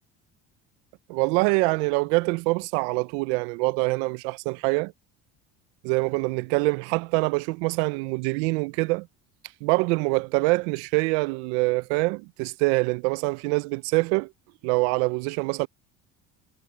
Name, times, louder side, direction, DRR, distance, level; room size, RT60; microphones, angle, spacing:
voice 1, 1.1-4.9 5.8-9.1 9.6-14.3 14.6-15.7, right 26 dB, 85° right, 0.5 m, -25 dB
supercardioid pair, 90°, 33 cm